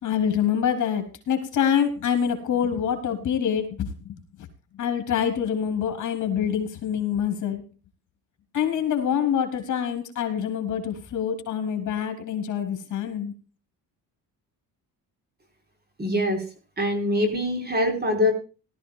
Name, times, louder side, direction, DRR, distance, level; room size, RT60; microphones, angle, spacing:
voice 1, 0.0-4.2 4.8-7.6 8.5-13.3, left 8 dB, 55° left, 6 dB, 3.5 m, -26 dB
voice 2, 16.0-16.4 16.8-18.3, left 1 dB, 25° right, 5 dB, 4.3 m, -23 dB
19.0 x 13.0 x 2.4 m, 0.34 s
cardioid pair, 125°, 35 cm